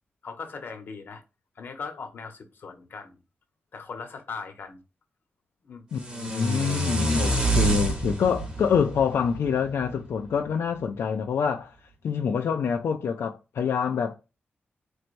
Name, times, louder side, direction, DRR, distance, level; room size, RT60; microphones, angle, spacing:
voice 1, 0.2-1.2 1.6-3.2 3.7-4.8 5.6-5.8, left 5 dB, 55° left, 0.9 m, -39 dB
voice 2, 5.9-11.8 12.0-14.1, left 6 dB, 80° left, 0.4 m, -26 dB
sound 1, 6.0-10.1, right 2 dB, 20° right, 1.0 m, -27 dB
4.4 x 3.2 x 2.5 m
wide cardioid pair, 170°, 4 cm